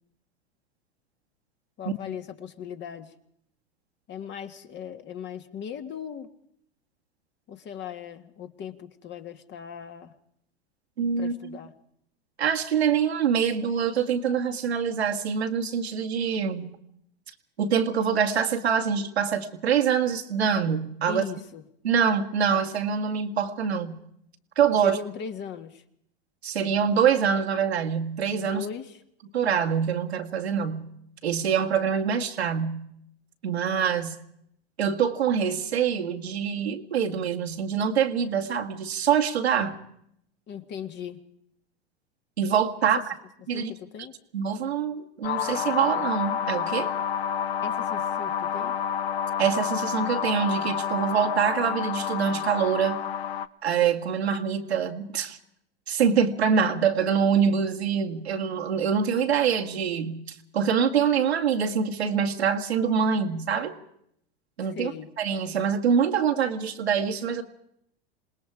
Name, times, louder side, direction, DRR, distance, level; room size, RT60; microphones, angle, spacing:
voice 1, 1.8-3.1 4.1-6.3 7.5-10.1 11.2-11.7 21.1-21.6 24.8-25.8 28.4-29.0 40.5-41.2 42.8-42.9 43.5-44.1 47.6-48.8 64.6-65.1, left 8 dB, 35° left, 8 dB, 1.9 m, -38 dB
voice 2, 11.0-11.6 12.4-16.8 17.6-21.2 21.8-24.0 24.6-25.0 26.4-28.7 29.3-30.9 31.2-32.8 33.4-34.2 34.8-39.8 42.4-43.0 43.5-43.7 44.3-46.9 49.4-53.0 53.6-55.4 55.9-60.2 60.5-63.7 64.6-64.9 65.2-67.4, right 7 dB, 85° right, 4 dB, 2.2 m, -25 dB
sound 1, 45.2-53.5, left 8 dB, 75° left, 1.0 m, -29 dB
27.0 x 20.0 x 4.9 m, 0.72 s
hypercardioid pair, 100°, 31 cm